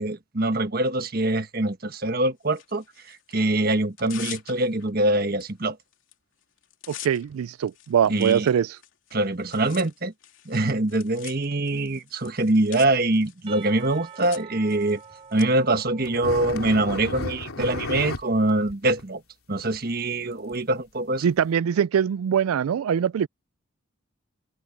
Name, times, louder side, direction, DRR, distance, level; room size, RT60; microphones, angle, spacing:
voice 1, 0.0-5.8 8.1-8.5 9.1-10.1 10.4-15.0 15.3-19.2 19.5-21.2, right 2 dB, 45° right, 1.4 m, -24 dB
Tearing, 2.5-3.4 3.8-4.9 5.4-5.5 5.8-6.1 6.4-15.5, left 12 dB, 65° left, 2.8 m, -44 dB
voice 2, 6.9-8.8 21.2-23.3, right 8 dB, 90° right, 0.3 m, -23 dB
Percussion / Church bell, 13.5-17.4, right 7 dB, 25° right, 3.0 m, -46 dB
sound 1, 16.0-18.2 18.6-18.7 19.0-19.1 19.8-19.9 20.5-20.6 21.4-21.5, left 2 dB, 85° left, 3.2 m, -32 dB
head